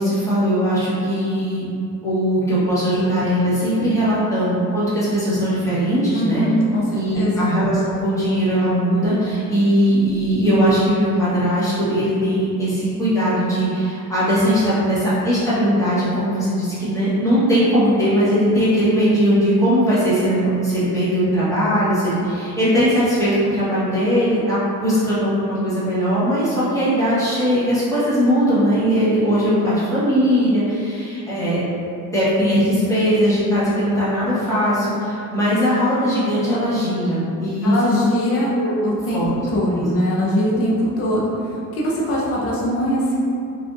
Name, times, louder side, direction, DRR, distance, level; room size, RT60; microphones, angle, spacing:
voice 1, 0.0-1.7 2.0-6.4 6.9-31.6 32.1-37.7 38.5-38.8 39.1-39.3 39.7-39.9 40.5-40.6, equal, 10° left, -11 dB, 1.1 m, -19 dB
voice 2, 6.1-6.8 7.1-7.5 37.6-38.5 38.8-39.2 39.5-41.3 41.8-43.2, equal, 40° left, -5 dB, 0.6 m, -21 dB
3.3 x 2.6 x 2.5 m, 2.6 s
cardioid pair, 125°, 34 cm